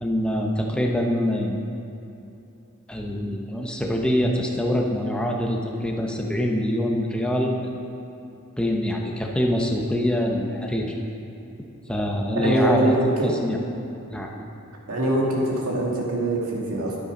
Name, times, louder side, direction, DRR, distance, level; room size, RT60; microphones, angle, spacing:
voice 1, 0.0-1.6 2.9-7.7 8.6-10.9 11.9-12.9 13.2-13.6 14.1-14.3, equal, 5° left, 0 dB, 0.8 m, -24 dB
voice 2, 12.4-13.4 14.9-17.0, right 1 dB, 80° right, -3 dB, 2.1 m, -23 dB
9.9 x 9.8 x 5.2 m, 2.7 s
head